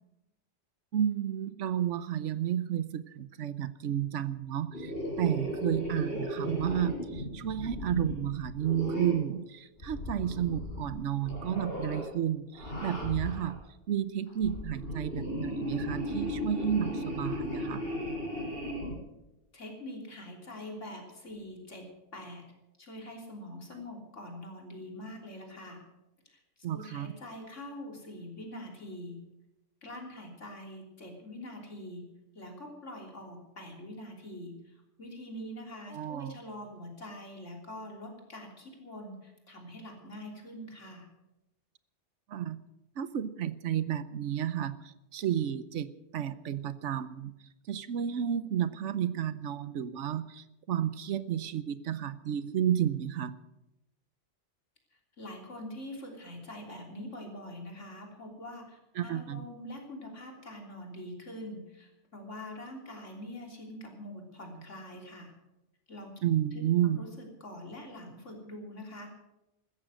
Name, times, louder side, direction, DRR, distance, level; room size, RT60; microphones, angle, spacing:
voice 1, 0.9-17.9 26.6-27.1 35.9-36.3 42.3-42.6 43.0-47.3 47.7-53.4 59.0-59.5 66.2-67.1, right 10 dB, 85° right, 15 dB, 1.1 m, -32 dB
sound 1, 4.7-9.3 9.8-10.9 11.2-12.1 12.5-13.6 14.3-18.9, equal, 55° left, 5.0 m, -36 dB
voice 2, 19.5-22.4 22.8-25.8 26.3-26.4 26.7-29.2 29.8-32.0 32.3-41.1 54.9-65.3 65.9-66.2 66.5-69.1, left 1 dB, 85° left, 1 dB, 3.7 m, -44 dB
15.5 x 13.5 x 6.3 m, 0.94 s
omnidirectional pair, 1.2 m